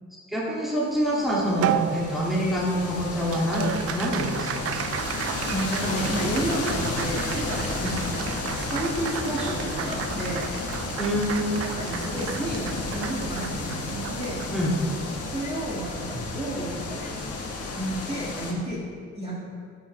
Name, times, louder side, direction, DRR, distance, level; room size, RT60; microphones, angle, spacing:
voice 1, 0.3-4.8 7.8-8.0 11.0-11.6 14.5-14.8 16.1-16.2, equal, ahead, -6 dB, 2.2 m, -26 dB
sound 1, 1.0-18.5, left 3 dB, 50° left, 1.5 m, -33 dB
Applause, 1.6-16.3, right 9 dB, 50° right, 0.4 m, -34 dB
voice 2, 5.5-10.5 11.8-14.5 15.3-17.2 17.7-18.8 19.2-19.3, right 1 dB, 20° right, -7 dB, 2.0 m, -31 dB
12.0 x 5.9 x 3.3 m, 2.3 s
cardioid pair, 90°, 30 cm